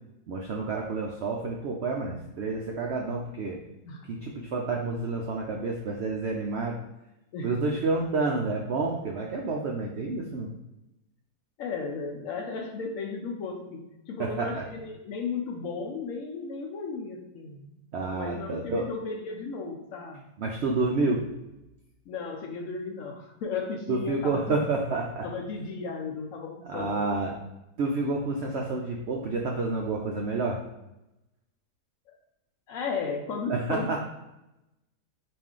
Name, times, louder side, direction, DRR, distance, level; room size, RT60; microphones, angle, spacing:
voice 1, 0.3-3.6 4.1-6.8 7.4-10.5 14.2-14.6 17.9-18.9 20.4-21.3 23.9-25.2 26.7-27.3 27.8-30.6 33.5-34.0, right 3 dB, 85° right, 0 dB, 0.5 m, -29 dB
voice 2, 11.6-17.7 18.1-20.2 22.1-24.7 25.2-27.2 32.1-32.2 32.7-34.0, left 4 dB, 70° left, 2 dB, 0.8 m, -35 dB
4.3 x 2.6 x 3.6 m, 0.92 s
omnidirectional pair, 1.7 m